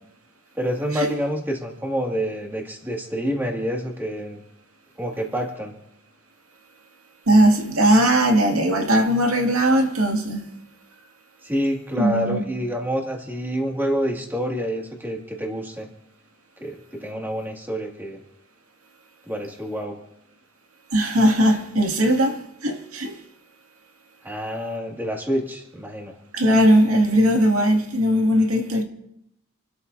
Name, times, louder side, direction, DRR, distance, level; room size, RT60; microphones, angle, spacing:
voice 1, 0.6-4.4 5.0-5.7 11.4-15.9 16.6-18.2 19.3-20.0 24.2-26.1, equal, 10° right, 2.2 m, -27 dB
voice 2, 7.3-10.5 12.0-12.4 20.9-23.2 26.3-28.8, right 1 dB, 90° right, 2.2 m, -19 dB
28.5 x 13.0 x 2.7 m
head